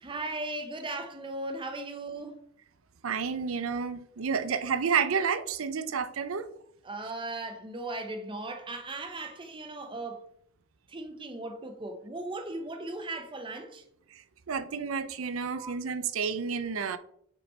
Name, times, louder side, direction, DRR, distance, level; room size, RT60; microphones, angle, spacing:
voice 1, 0.0-2.4 6.8-10.3 10.9-13.8 15.6-15.7, right 2 dB, 25° right, 0.7 m, -37 dB
voice 2, 3.0-6.5 14.5-17.0, right 6 dB, 85° right, 0.6 m, -30 dB
5.4 x 5.0 x 4.3 m
head